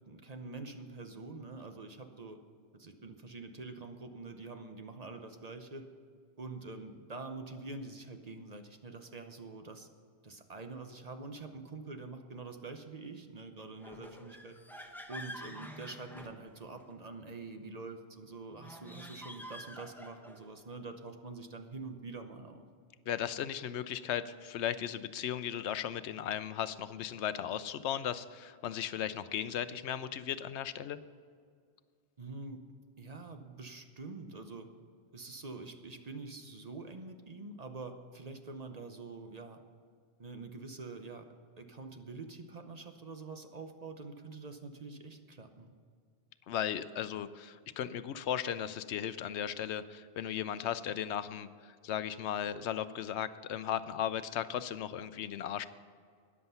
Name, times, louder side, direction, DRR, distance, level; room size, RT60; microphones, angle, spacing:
voice 1, 0.1-2.4 2.7-5.9 6.4-9.9 10.2-22.6 32.2-32.6 33.0-34.7 35.1-39.6 40.2-41.2 41.6-45.7, right 3 dB, 40° right, 6 dB, 0.9 m, -46 dB
sound 1, 13.8-16.9 18.5-20.5, equal, ahead, 0.9 m, -48 dB
voice 2, 23.1-31.0 46.5-55.7, left 10 dB, 85° left, 14 dB, 0.9 m, -36 dB
13.5 x 9.9 x 5.6 m, 2.1 s
omnidirectional pair, 1.1 m